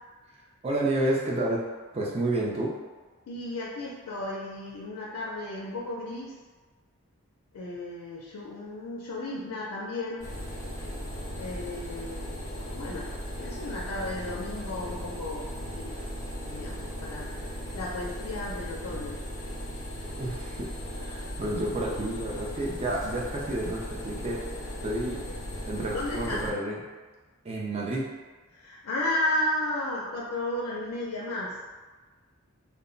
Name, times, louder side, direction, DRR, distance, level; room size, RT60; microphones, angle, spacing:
voice 1, 0.6-1.6 1.9-2.7 20.2-24.4 24.8-25.2 25.7-26.8 27.4-28.1, right 1 dB, 25° right, -4 dB, 0.3 m, -30 dB
voice 2, 3.3-6.3 7.5-10.4 11.4-12.5 12.7-13.1 13.4-16.0 16.4-17.5 17.7-19.2 25.9-26.4 28.5-31.6, left 1 dB, 85° left, -4 dB, 0.4 m, -34 dB
sound 1, 10.2-26.5, equal, 15° left, 0.9 m, -37 dB
2.1 x 2.0 x 3.7 m, 1.3 s
head